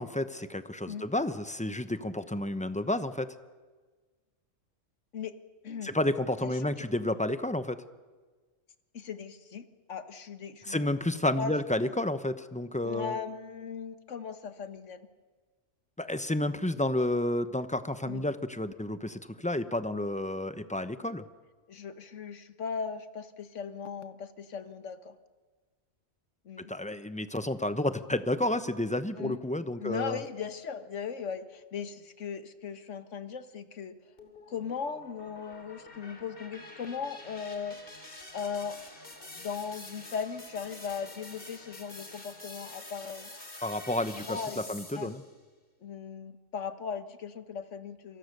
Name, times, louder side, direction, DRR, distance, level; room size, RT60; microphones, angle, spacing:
voice 1, 0.0-3.3 5.8-7.8 10.6-13.2 16.0-21.2 26.6-30.2 43.6-45.2, left 1 dB, 5° left, 11 dB, 0.7 m, -31 dB
voice 2, 5.6-5.9 6.4-6.9 8.9-10.8 11.4-11.5 11.8-11.9 12.8-15.1 18.0-18.2 21.7-25.2 26.4-26.7 29.2-29.4 29.8-34.0 34.5-37.8 38.3-38.9 39.3-43.3 44.2-44.6 44.9-45.1 45.8-48.2, left 6 dB, 70° left, 10 dB, 1.6 m, -38 dB
sound 1, 34.2-45.3, left 2 dB, 45° left, 3.1 m, -47 dB
28.0 x 24.5 x 6.7 m, 1.4 s
omnidirectional pair, 1.3 m